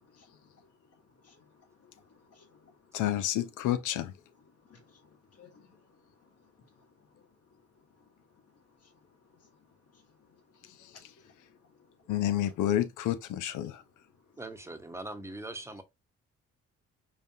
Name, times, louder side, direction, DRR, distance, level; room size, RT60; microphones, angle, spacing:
voice 1, 0.0-2.5 2.9-3.1 4.4-7.2 7.9-12.5 13.7-14.1, left 5 dB, 55° left, 1.8 m, -62 dB
voice 2, 2.9-4.1 12.1-13.8, left 12 dB, 80° left, 0.6 m, -29 dB
voice 3, 14.4-15.8, right 2 dB, 10° right, 0.9 m, -41 dB
5.1 x 2.5 x 2.7 m
cardioid pair, 90°, 30 cm